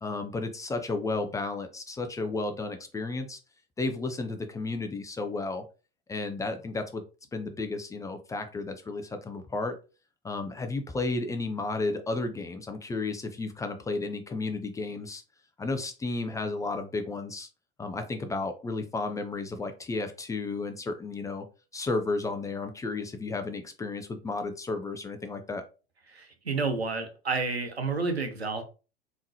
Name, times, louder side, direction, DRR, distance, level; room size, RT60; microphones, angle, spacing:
voice 1, 0.0-3.4 3.8-5.6 6.1-7.0 7.3-9.7 10.2-15.2 15.6-17.5 17.8-21.5 21.7-25.6, left 3 dB, 10° left, 6 dB, 0.4 m, -33 dB
voice 2, 26.1-28.6, right 4 dB, 90° right, 7 dB, 0.8 m, -30 dB
3.6 x 2.9 x 2.8 m, 0.33 s
figure-of-eight pair, 85°, 31 cm